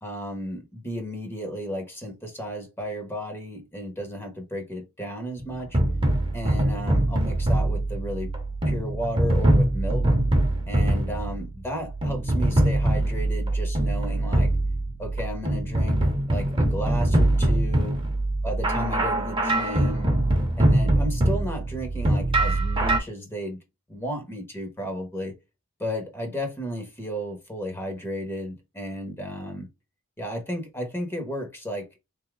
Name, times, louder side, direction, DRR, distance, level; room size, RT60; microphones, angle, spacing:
voice 1, 0.0-5.8 6.3-8.3 8.7-10.0 10.7-14.5 15.0-16.0 16.3-18.0 18.4-20.1 20.6-23.6 23.9-25.3 25.8-29.7 30.2-32.0, equal, 10° left, 1.0 m, -33 dB
sound 1, 5.4-23.0, right 1 dB, 25° right, 1.0 m, -23 dB
3.6 x 2.7 x 3.3 m
head